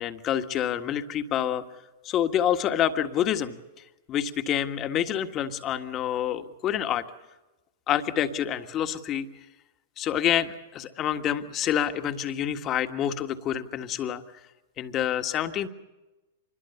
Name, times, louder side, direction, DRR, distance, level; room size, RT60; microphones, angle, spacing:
voice 1, 0.0-1.6 2.0-3.5 4.1-7.0 7.9-9.3 10.0-14.2 14.8-15.7, left 10 dB, 30° left, 8 dB, 1.6 m, -27 dB
26.0 x 21.5 x 7.0 m, 1.1 s
hypercardioid pair, 110°, 0 cm